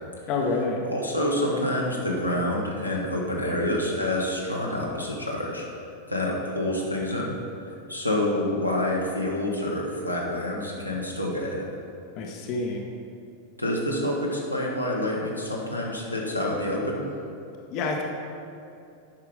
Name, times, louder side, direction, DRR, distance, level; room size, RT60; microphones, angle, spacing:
voice 1, 0.3-0.8 12.2-12.8 17.7-18.0, left 3 dB, 40° left, 1 dB, 0.9 m, -27 dB
voice 2, 0.9-5.7 6.1-7.4 7.9-11.7 13.6-17.0, left 1 dB, 90° left, -3 dB, 1.3 m, -27 dB
8.8 x 5.9 x 4.9 m, 2.6 s
figure-of-eight pair, 90°, 0 cm